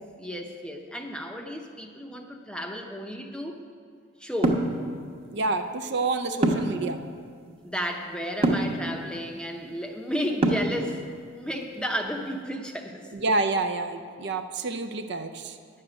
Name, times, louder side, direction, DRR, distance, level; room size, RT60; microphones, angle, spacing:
voice 1, 0.2-3.6 4.2-4.7 7.6-11.0 11.3-12.9, equal, 5° left, 3 dB, 0.7 m, -33 dB
sound 1, 4.4-4.7 6.4-6.8 8.4-8.7 10.4-10.8, right 2 dB, 30° right, 1.0 m, -22 dB
voice 2, 5.3-7.0 13.1-15.6, right 3 dB, 55° right, 7 dB, 0.5 m, -28 dB
10.5 x 6.6 x 8.7 m, 2.1 s
head